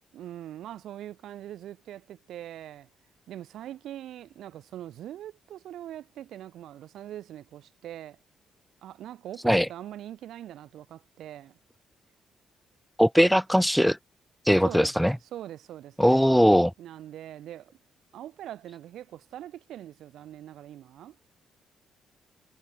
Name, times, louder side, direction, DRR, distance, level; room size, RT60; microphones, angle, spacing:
voice 1, 0.1-2.9 3.3-8.2 8.8-11.6 13.2-13.4 14.6-17.7 18.1-21.2, right 12 dB, 75° right, 6.7 m, -42 dB
voice 2, 13.0-14.0 14.5-15.1 16.0-16.7, equal, ahead, 1.7 m, -20 dB
cardioid pair, 90°, 0 cm